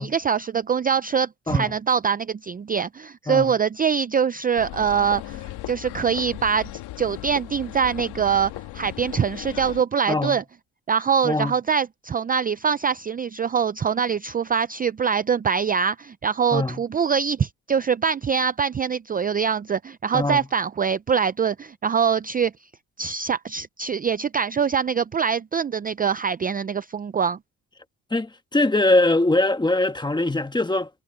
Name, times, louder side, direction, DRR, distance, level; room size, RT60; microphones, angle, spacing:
voice 1, 0.0-6.7 7.0-10.4 10.9-22.5 23.0-27.4, right 7 dB, 25° right, 0.5 m, -24 dB
sound 1, 4.6-9.8, left 16 dB, 85° left, 1.6 m, -37 dB
voice 2, 10.1-10.4 11.2-11.5 16.5-16.8 20.1-20.5 28.1-30.9, left 2 dB, 10° left, 1.4 m, -22 dB
cardioid pair, 90°, 39 cm